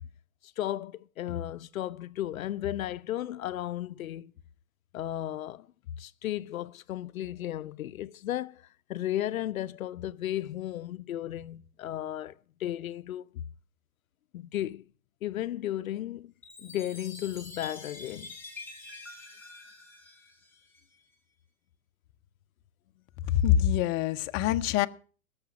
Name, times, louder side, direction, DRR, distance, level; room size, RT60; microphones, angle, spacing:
voice 1, 0.6-4.3 4.9-5.7 6.0-8.6 8.9-12.3 12.6-13.3 14.3-14.8 15.2-16.3 16.6-18.3, left 13 dB, 80° left, 0.6 m, -34 dB
Chime, 16.4-21.0, left 3 dB, 5° left, 2.5 m, -46 dB
voice 2, 23.2-24.9, left 11 dB, 30° left, 0.6 m, -25 dB
17.0 x 6.7 x 6.0 m
hypercardioid pair, 120°, 41 cm